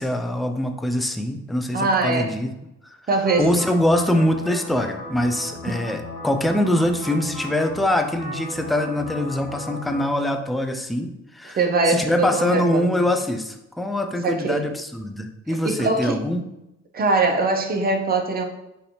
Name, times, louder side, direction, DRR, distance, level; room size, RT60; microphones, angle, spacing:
voice 1, 0.0-2.5 3.4-11.6 11.9-16.4, left 1 dB, ahead, 6 dB, 0.3 m, -23 dB
voice 2, 1.7-2.3 3.1-3.5 11.5-13.1 14.2-14.7 15.6-16.2 16.9-18.4, right 3 dB, 30° right, 3 dB, 0.6 m, -22 dB
sound 1, 3.2-10.0, left 1 dB, 70° left, 1.3 m, -36 dB
4.9 x 2.6 x 2.8 m, 0.90 s
cardioid pair, 90°, 30 cm